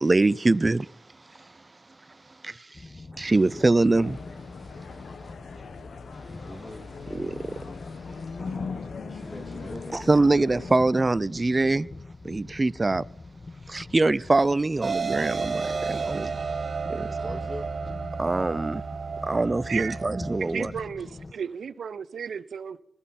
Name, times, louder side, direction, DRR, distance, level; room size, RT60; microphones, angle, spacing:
voice 1, 0.0-0.9 2.4-2.6 3.1-4.2 7.1-7.3 9.9-11.9 12.2-13.0 13.7-16.3 16.9-17.1 18.2-18.8 19.2-20.7, right 2 dB, 30° right, 0.5 m, -23 dB
sound 1, 2.7-21.3, left 3 dB, 40° left, 1.0 m, -43 dB
voice 2, 3.3-3.8 6.4-6.9 9.1-9.9 17.1-17.7, equal, ahead, 2.0 m, -41 dB
sound 2, 3.9-10.8, left 5 dB, 70° left, 1.4 m, -40 dB
sound 3, 14.8-20.4, right 5 dB, 50° right, 1.0 m, -32 dB
voice 3, 19.7-20.0 20.4-22.8, right 7 dB, 75° right, 0.7 m, -34 dB
20.5 x 12.5 x 4.3 m
supercardioid pair, 45°, 0 cm